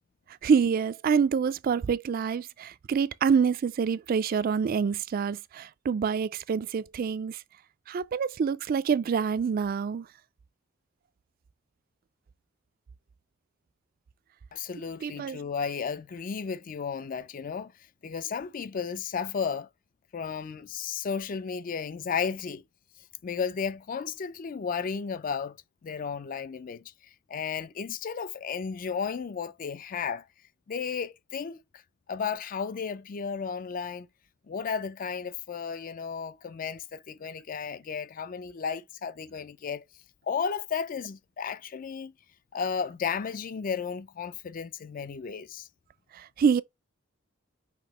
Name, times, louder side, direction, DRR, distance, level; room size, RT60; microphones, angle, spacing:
voice 1, 0.4-7.4 7.9-10.1 15.0-15.4 46.1-46.6, right 6 dB, 50° right, 0.3 m, -26 dB
voice 2, 14.5-17.7 18.0-19.7 20.1-22.6 23.2-25.6 25.8-26.8 27.3-30.2 30.7-31.6 32.1-34.1 34.5-39.8 40.3-42.1 42.5-45.7, left 6 dB, 45° left, 0.4 m, -33 dB
5.9 x 2.8 x 3.0 m
head